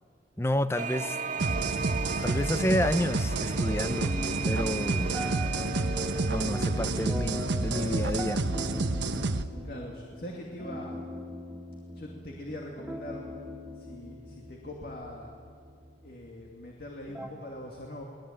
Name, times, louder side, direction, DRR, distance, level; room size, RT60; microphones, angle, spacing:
voice 1, 0.4-1.2 2.2-4.2 4.4-5.1 6.3-8.4, left 1 dB, 15° left, 12 dB, 0.8 m, -30 dB
sound 1, 0.8-8.4, right 5 dB, 45° right, 2.0 m, -37 dB
sound 2, 1.4-9.4, right 2 dB, 80° right, 1.1 m, -29 dB
sound 3, 4.0-17.3, left 1 dB, 5° right, 2.3 m, -41 dB
voice 2, 9.6-11.0 12.0-13.3 13.8-15.3 16.0-18.0, left 1 dB, 55° left, 0 dB, 2.6 m, -42 dB
24.0 x 19.0 x 8.9 m, 2.2 s
head